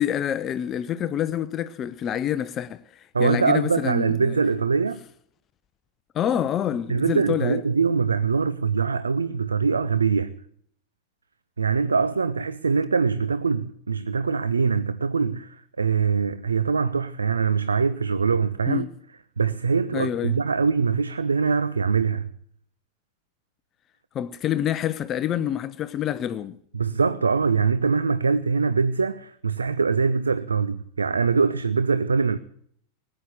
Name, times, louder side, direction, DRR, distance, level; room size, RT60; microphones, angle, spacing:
voice 1, 0.0-4.4 6.1-7.6 18.7-18.9 19.9-20.4 24.1-26.6, left 10 dB, 30° left, 0.5 m, -27 dB
voice 2, 3.1-5.0 6.9-10.3 11.6-18.9 19.4-22.3 26.7-32.4, right 5 dB, 75° right, 0.5 m, -23 dB
18.5 x 8.8 x 7.9 m
figure-of-eight pair, 90°, 0 cm